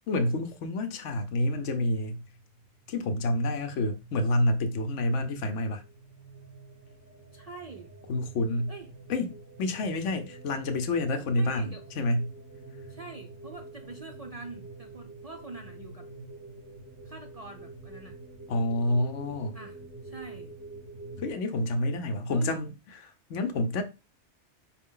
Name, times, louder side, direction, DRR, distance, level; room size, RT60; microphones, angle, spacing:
voice 1, 0.1-2.2 2.9-5.8 8.1-8.7 9.1-9.3 9.6-12.3 18.5-19.6 21.2-22.7 23.0-23.8, left 1 dB, 85° left, 1.0 m, -28 dB
sound 1, 2.3-21.3, right 2 dB, 15° right, 0.6 m, -47 dB
voice 2, 7.3-7.9 8.7-8.9 11.4-11.8 12.9-16.1 17.0-18.2 19.5-20.6 22.3-22.7, right 3 dB, 55° right, 0.4 m, -45 dB
4.9 x 2.3 x 3.7 m
omnidirectional pair, 1.2 m